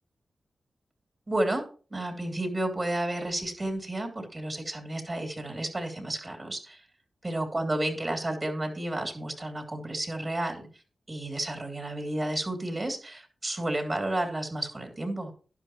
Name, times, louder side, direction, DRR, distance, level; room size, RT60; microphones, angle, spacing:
voice 1, 1.3-1.6 1.9-6.8 7.2-10.7 11.1-15.3, right 1 dB, 30° right, 4 dB, 2.9 m, -31 dB
12.0 x 10.5 x 3.1 m, 0.39 s
cardioid pair, 70°, 0 cm